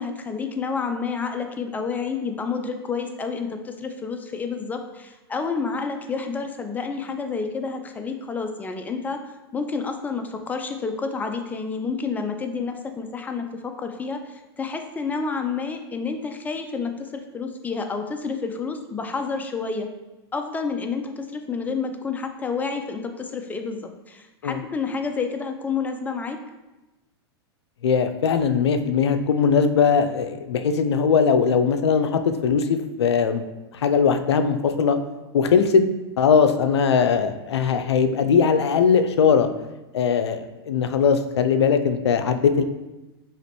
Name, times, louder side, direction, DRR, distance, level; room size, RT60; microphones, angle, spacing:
voice 1, 0.0-9.2 9.5-19.9 20.3-26.4, left 5 dB, 10° left, 5 dB, 0.4 m, -29 dB
voice 2, 27.8-33.4 33.7-35.0 35.3-35.8 36.2-39.5 39.9-42.6, left 6 dB, 85° left, 8 dB, 0.4 m, -20 dB
4.8 x 2.9 x 3.0 m, 1.1 s
hypercardioid pair, 115°, 14 cm